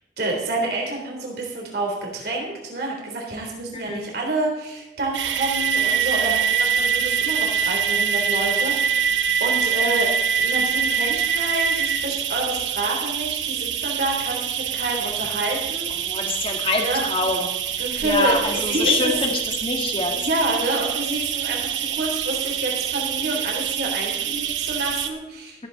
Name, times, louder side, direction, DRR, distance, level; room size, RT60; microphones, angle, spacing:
voice 1, 0.2-9.1 9.4-10.1 10.4-16.2 16.8-17.0 17.7-19.1 20.1-25.7, right 2 dB, 55° right, -1 dB, 3.5 m, -28 dB
voice 2, 3.7-4.1 16.0-17.5 18.0-20.1, left 3 dB, 30° left, 2 dB, 2.1 m, -25 dB
sound 1, 5.1-25.1, right 7 dB, 85° right, 1.0 m, -25 dB
14.5 x 14.0 x 4.0 m, 0.98 s
head